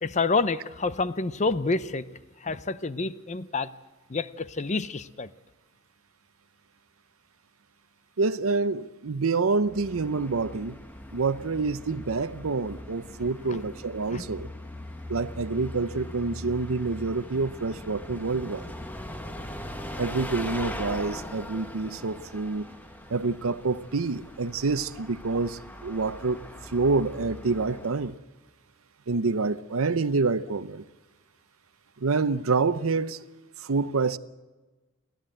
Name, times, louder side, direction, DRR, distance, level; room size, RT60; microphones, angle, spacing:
voice 1, 0.0-2.1 2.4-3.7 4.1-5.3 13.5-13.6 14.1-14.3, left 3 dB, 35° left, 0.7 m, -28 dB
voice 2, 8.2-10.8 11.1-14.5 15.1-18.7 20.0-22.7 23.1-26.4 26.7-28.2 29.1-30.8 32.0-33.2 33.6-34.2, right 4 dB, 85° right, 0.7 m, -27 dB
Bus, 9.6-28.2, left 1 dB, 10° left, 1.2 m, -40 dB
29.0 x 12.0 x 7.9 m
head